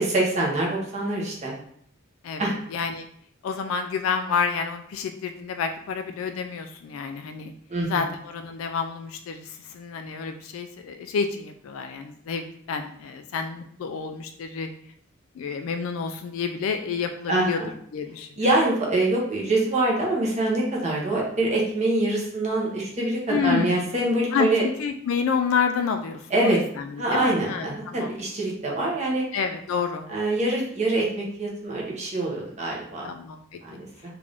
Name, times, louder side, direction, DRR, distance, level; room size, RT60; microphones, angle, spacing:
voice 1, 0.0-1.5 2.4-2.5 7.7-8.0 17.3-17.7 18.4-24.7 26.3-26.6 27.0-29.2 30.1-33.1 33.6-33.9, right 2 dB, 35° right, -3 dB, 0.9 m, -24 dB
voice 2, 2.2-3.1 3.4-7.5 7.9-14.7 15.4-17.6 17.9-18.4 23.3-23.9 24.3-28.1 29.3-30.1 33.0-33.6, left 6 dB, 75° left, 6 dB, 0.3 m, -29 dB
3.5 x 2.5 x 3.3 m, 0.65 s
head